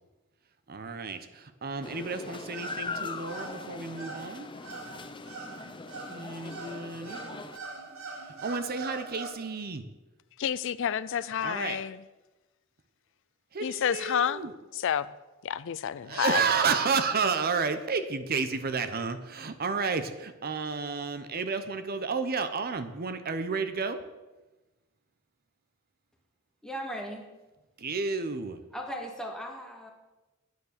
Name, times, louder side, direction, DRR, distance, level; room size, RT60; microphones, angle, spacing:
voice 1, 0.7-4.5 6.1-7.2 8.4-9.8 11.4-11.8 13.5-14.5 16.1-24.0 27.8-28.6, right 5 dB, 45° right, 10 dB, 0.8 m, -31 dB
sound 1, 1.8-7.6, left 3 dB, 25° left, 0.6 m, -41 dB
sound 2, 2.0-9.3, right 3 dB, 80° right, 2.3 m, -43 dB
voice 2, 10.4-12.0 13.6-14.4 14.7-15.1 15.4-16.4, left 8 dB, 65° left, 16 dB, 0.4 m, -29 dB
voice 3, 26.6-27.3 28.7-29.9, equal, 5° left, 1 dB, 1.7 m, -37 dB
9.6 x 9.3 x 6.6 m, 1.1 s
head